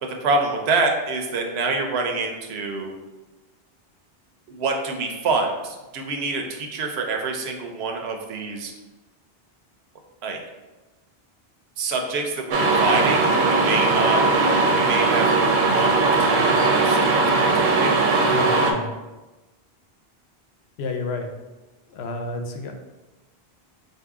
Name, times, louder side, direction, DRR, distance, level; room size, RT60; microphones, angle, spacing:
voice 1, 0.0-2.9 4.5-8.7 10.2-10.4 11.8-14.2 14.7-18.0, right 3 dB, 90° right, 3 dB, 0.9 m, -26 dB
sound 1, 12.5-18.7, right 3 dB, 60° right, 0.6 m, -19 dB
voice 2, 18.3-18.9 20.8-21.3 21.9-22.7, left 3 dB, 85° left, 4 dB, 0.8 m, -30 dB
4.0 x 2.7 x 3.5 m, 1.1 s
omnidirectional pair, 1.0 m